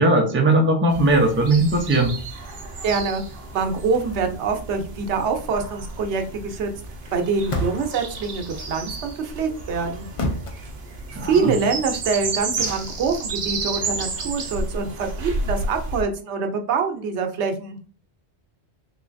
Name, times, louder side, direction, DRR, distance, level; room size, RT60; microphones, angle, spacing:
voice 1, 0.0-2.1 11.1-11.5, right 2 dB, 15° right, 2 dB, 0.5 m, -18 dB
sound 1, 0.9-16.0, right 3 dB, 55° right, 0.8 m, -32 dB
voice 2, 2.8-3.2 3.5-6.7 7.1-10.1 11.2-17.8, right 5 dB, 85° right, 5 dB, 0.9 m, -25 dB
sound 2, 3.7-4.1 7.0-8.0 9.4-10.6, left 1 dB, 40° left, 0.5 m, -30 dB
3.7 x 3.1 x 2.5 m, 0.40 s
omnidirectional pair, 1.1 m